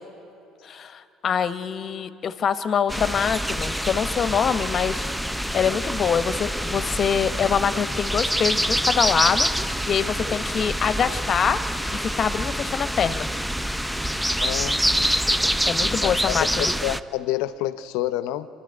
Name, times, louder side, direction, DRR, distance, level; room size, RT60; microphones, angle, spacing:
voice 1, 0.6-5.0 5.5-11.6 11.9-13.3 15.7-16.7, left 7 dB, 45° left, 12 dB, 1.0 m, -24 dB
sound 1, 2.9-17.0, equal, 5° right, 0.6 m, -26 dB
voice 2, 14.4-15.1 16.0-18.5, left 14 dB, 70° left, 14 dB, 0.7 m, -28 dB
27.5 x 11.5 x 9.0 m, 2.8 s
hypercardioid pair, 65°, 0 cm